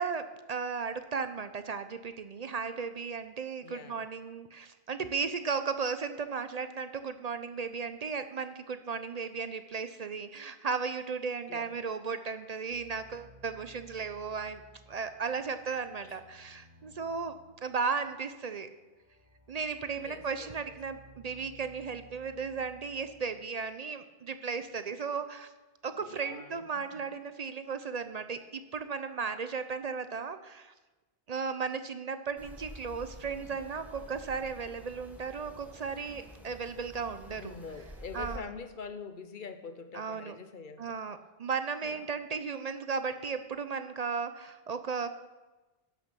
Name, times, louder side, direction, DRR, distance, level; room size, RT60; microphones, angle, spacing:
voice 1, 0.0-14.6 14.9-17.3 17.6-18.7 19.5-25.5 25.8-30.7 31.3-37.5 38.1-38.5 39.9-40.3 40.8-45.1, right 5 dB, 50° right, 10 dB, 0.5 m, -35 dB
voice 2, 3.6-4.1 11.5-11.7 16.0-16.2 20.0-20.5 26.1-27.0 37.4-41.0 41.8-42.0, left 5 dB, 55° left, 10 dB, 0.8 m, -45 dB
sound 1, 12.7-23.5, right 1 dB, 80° right, 3.8 m, -58 dB
sound 2, 32.4-38.4, equal, ahead, 1.1 m, -49 dB
11.0 x 6.4 x 6.0 m, 1.2 s
omnidirectional pair, 1.1 m